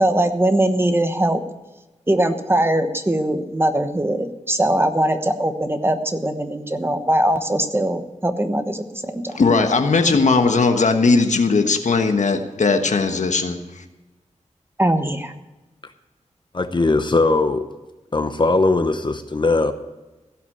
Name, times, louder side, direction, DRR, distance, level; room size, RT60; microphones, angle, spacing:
voice 1, 0.0-1.4 2.1-9.4 14.8-15.3, right 1 dB, 20° right, 7 dB, 1.1 m, -21 dB
voice 2, 9.3-13.8, left 4 dB, 75° left, 6 dB, 1.3 m, -18 dB
voice 3, 16.5-17.7 18.1-19.7, left 3 dB, 40° left, 8 dB, 0.8 m, -19 dB
16.5 x 5.9 x 8.5 m, 1.1 s
wide cardioid pair, 80°, 13 cm